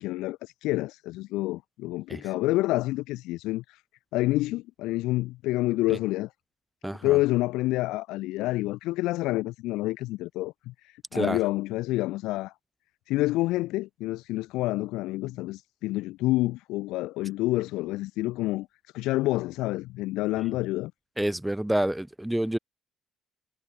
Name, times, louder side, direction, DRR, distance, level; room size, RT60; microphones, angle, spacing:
voice 1, 0.0-3.8 4.1-6.3 7.0-12.5 13.1-18.7 18.9-20.9, left 18 dB, 85° left, 4.3 m, -28 dB
voice 2, 6.8-7.2 11.1-11.4 21.2-22.6, right 1 dB, 5° right, 5.9 m, -28 dB
cardioid pair, 130°, 0 cm